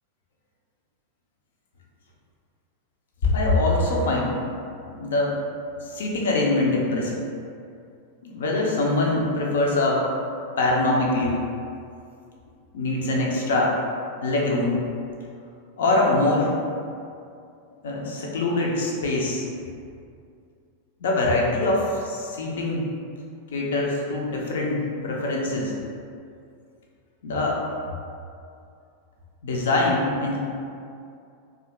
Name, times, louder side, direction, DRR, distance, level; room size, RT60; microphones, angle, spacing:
voice 1, 3.2-4.3 4.9-5.4 5.8-7.2 8.2-10.1 10.6-11.4 12.7-13.7 14.2-14.8 15.8-16.5 17.8-19.5 21.0-22.9 23.5-25.7 27.2-27.6 29.4-30.4, left 2 dB, 60° left, -2 dB, 0.5 m, -23 dB
2.7 x 2.4 x 3.0 m, 2.4 s
figure-of-eight pair, 90°, 0 cm